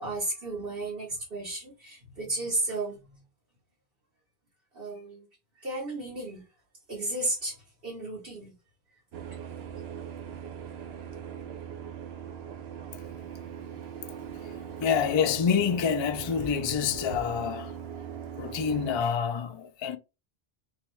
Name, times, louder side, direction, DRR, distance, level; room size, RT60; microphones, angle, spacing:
voice 1, 0.0-3.0 4.7-5.3 5.6-6.4 6.9-7.5 7.8-8.5, right 2 dB, 65° right, 1.6 m, -33 dB
sound 1, 9.1-19.0, right 7 dB, 80° right, 0.9 m, -40 dB
voice 2, 14.8-17.7 18.4-20.0, left 7 dB, 50° left, 0.3 m, -27 dB
3.5 x 3.3 x 3.1 m
omnidirectional pair, 1.1 m